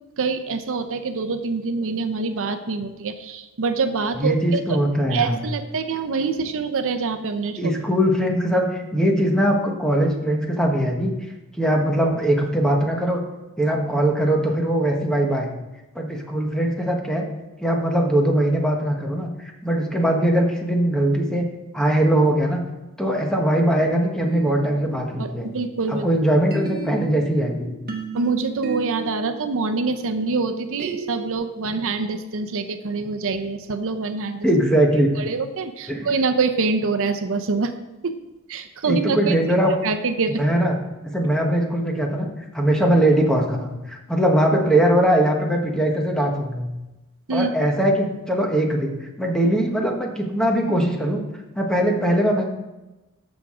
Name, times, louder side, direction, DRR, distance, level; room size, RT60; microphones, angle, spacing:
voice 1, 0.2-4.6 5.1-7.7 25.2-26.1 28.1-34.5 35.2-37.7 38.0-38.2 38.5-39.4 39.8-40.4 47.3-47.5, right 4 dB, 65° right, 8 dB, 0.6 m, -25 dB
voice 2, 4.1-5.4 7.6-11.1 11.6-13.2 13.6-15.5 15.9-17.3 17.6-21.5 21.7-22.6 23.0-25.5 25.9-27.7 34.4-35.1 35.9-36.1 38.9-39.7 40.3-40.7 41.1-42.3 42.5-46.7 47.3-48.9 49.2-51.2 51.5-52.4, right 1 dB, 5° left, 1 dB, 1.2 m, -21 dB
sound 1, 24.2-26.0 26.5-31.3, right 4 dB, 45° right, 1.2 m, -35 dB
13.5 x 6.2 x 3.7 m, 1.0 s
head